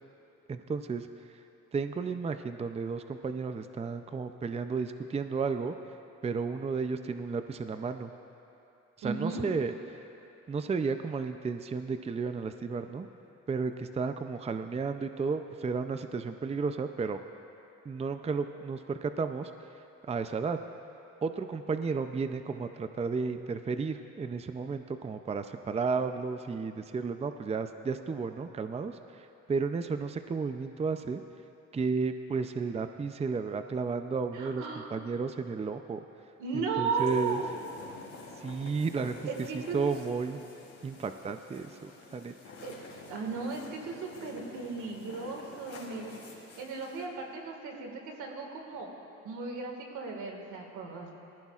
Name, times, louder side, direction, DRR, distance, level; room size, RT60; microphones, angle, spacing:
voice 1, 0.5-1.1 1.7-5.7 6.2-8.1 9.0-9.7 10.5-13.1 13.5-17.2 17.9-19.5 20.1-20.6 21.2-31.2 31.7-36.0 36.8-37.4 38.4-39.2 39.5-40.4 40.8-42.3, right 5 dB, 20° right, 8 dB, 0.5 m, -33 dB
voice 2, 9.0-9.4 34.3-35.0 36.4-37.6 38.9-39.0 39.2-39.8 42.6-42.8 43.1-46.2 46.6-48.9 49.2-51.1, right 4 dB, 85° right, 1 dB, 1.9 m, -36 dB
sound 1, 36.9-47.1, left 3 dB, 70° left, 3.3 m, -49 dB
19.5 x 15.0 x 2.4 m, 2.7 s
cardioid pair, 90°, 30 cm